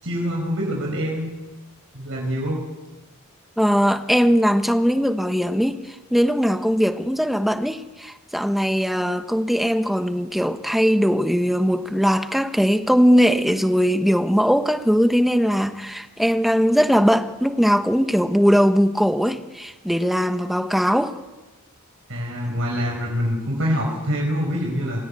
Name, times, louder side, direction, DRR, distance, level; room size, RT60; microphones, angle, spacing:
voice 1, 0.0-1.3 1.9-2.6 22.1-25.0, equal, 65° right, 5.4 m, -25 dB
voice 2, 3.6-21.2, equal, ahead, 1.2 m, -20 dB
26.5 x 17.0 x 8.7 m
head